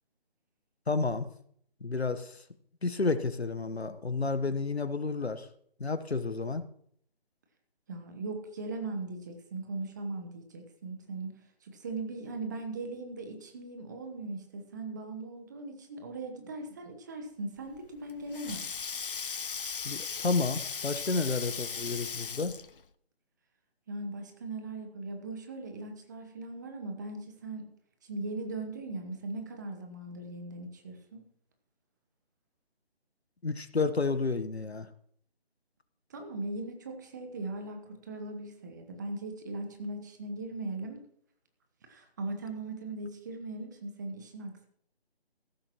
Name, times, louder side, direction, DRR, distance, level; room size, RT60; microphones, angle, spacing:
voice 1, 0.9-1.3 1.8-2.4 2.8-5.5 5.8-6.6 19.8-22.5 33.4-34.9, left 3 dB, 85° left, 12 dB, 1.2 m, -31 dB
voice 2, 7.9-11.3 11.6-18.7 23.9-27.7 28.0-31.2 36.1-41.0 41.9-44.7, right 2 dB, 20° right, 5 dB, 1.1 m, -39 dB
Sink (filling or washing), 17.7-22.8, left 6 dB, 60° left, 0.6 m, -37 dB
15.0 x 13.0 x 3.0 m, 0.66 s
figure-of-eight pair, 155°, 31 cm